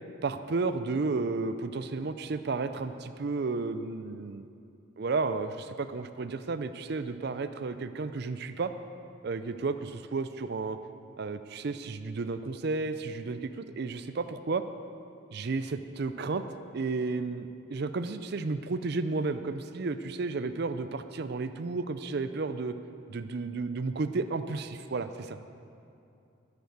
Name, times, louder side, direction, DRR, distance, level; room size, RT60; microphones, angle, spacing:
voice 1, 0.2-4.5 5.0-8.7 9.2-10.8 11.2-14.6 15.3-16.4 16.7-22.7 23.1-25.4, right 3 dB, 55° right, 10 dB, 0.5 m, -32 dB
11.5 x 10.5 x 6.6 m, 2.6 s
head